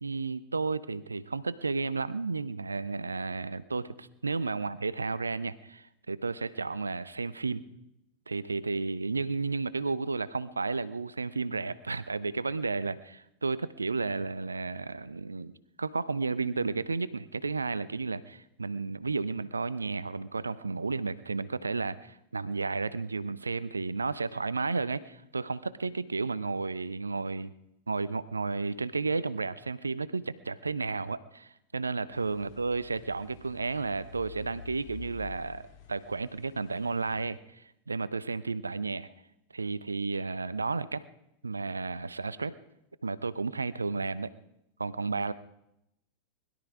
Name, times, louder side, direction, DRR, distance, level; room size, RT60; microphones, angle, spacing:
voice 1, 0.0-7.6 8.3-15.5 15.8-27.5 27.9-39.1 39.5-41.0 41.4-42.5 43.0-44.3 44.8-45.3, right 4 dB, 80° right, 17 dB, 0.6 m, -32 dB
sound 1, 32.1-37.3, left 6 dB, 45° left, 3.2 m, -49 dB
21.0 x 12.0 x 4.8 m, 0.84 s
figure-of-eight pair, 90°, 0 cm